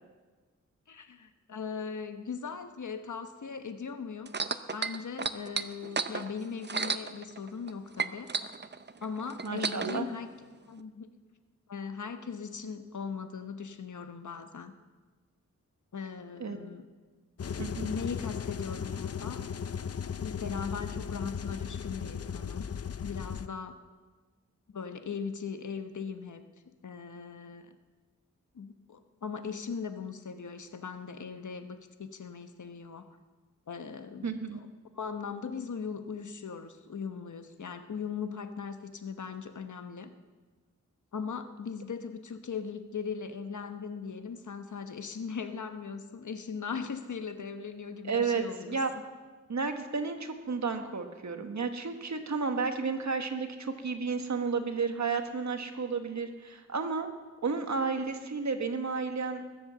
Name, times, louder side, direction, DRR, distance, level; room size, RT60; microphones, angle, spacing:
voice 1, 0.9-4.3 4.7-8.3 9.0-10.3 10.7-11.1 11.7-14.7 15.9-16.8 17.8-19.4 20.2-22.7 23.0-23.8 24.7-26.4 26.8-27.7 28.5-33.1 33.7-34.7 34.9-40.1 41.1-48.8, left 6 dB, 75° left, 8 dB, 1.1 m, -39 dB
sound 1, 4.3-7.7 8.0-10.0 10.8-10.9, right 5 dB, 35° right, 0.7 m, -33 dB
voice 2, 9.4-10.1 16.4-16.6 17.6-17.9 34.2-34.6 48.1-48.4 48.7-48.9 49.5-57.1 57.4-59.4, right 4 dB, 65° right, 6 dB, 1.5 m, -32 dB
sound 2, 17.4-23.5, left 7 dB, 50° left, 0.6 m, -36 dB
20.5 x 7.8 x 7.0 m, 1.4 s
wide cardioid pair, 85°, 30 cm